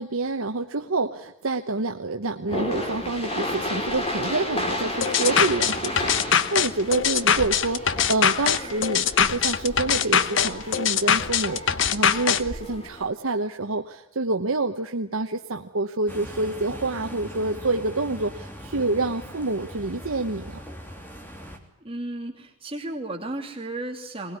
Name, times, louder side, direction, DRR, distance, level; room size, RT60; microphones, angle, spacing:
voice 1, 0.0-20.6, right 3 dB, 70° right, 5 dB, 1.1 m, -27 dB
sound 1, 2.5-13.1, left 1 dB, 25° left, 3.3 m, -32 dB
sound 2, 5.0-12.4, left 8 dB, 60° left, 0.9 m, -22 dB
sound 3, 16.1-21.6, equal, 10° left, 3.0 m, -40 dB
voice 2, 21.8-24.4, right 2 dB, 25° right, 3 dB, 2.8 m, -34 dB
21.0 x 20.5 x 9.7 m, 0.80 s
head